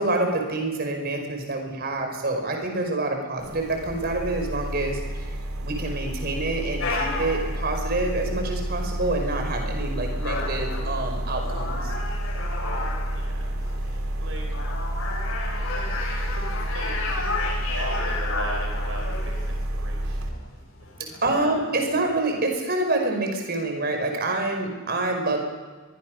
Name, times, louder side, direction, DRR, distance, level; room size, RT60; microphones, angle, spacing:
voice 1, 0.0-5.3 5.6-11.9 21.2-25.4, right 2 dB, 50° right, 4 dB, 5.1 m, -27 dB
sound 1, 3.4-20.3, right 1 dB, 85° right, 3.3 m, -30 dB
sound 2, 6.8-22.4, left 3 dB, 80° left, 7.6 m, -34 dB
voice 2, 12.6-13.5 14.2-14.5 15.5-20.6 21.0-21.1, right 2 dB, 70° right, 2 dB, 3.9 m, -41 dB
23.5 x 22.5 x 6.5 m, 1.4 s
head